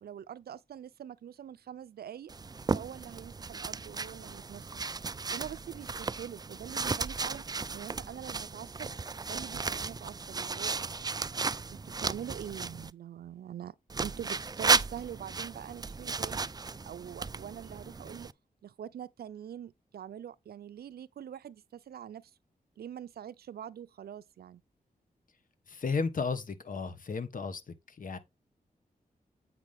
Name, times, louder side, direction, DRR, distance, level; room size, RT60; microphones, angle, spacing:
voice 1, 0.0-2.3 2.7-4.7 5.3-7.4 7.7-8.9 9.3-10.8 11.7-13.8 14.0-16.4 16.8-18.3 18.6-22.3 22.8-24.6, right 9 dB, 85° right, 0.5 m, -44 dB
sound 1, 2.3-12.9 13.9-18.3, right 4 dB, 25° right, 0.4 m, -34 dB
voice 2, 25.7-27.6 27.9-28.2, left 4 dB, 60° left, 1.5 m, -33 dB
8.3 x 6.0 x 3.5 m
wide cardioid pair, 85°, 16 cm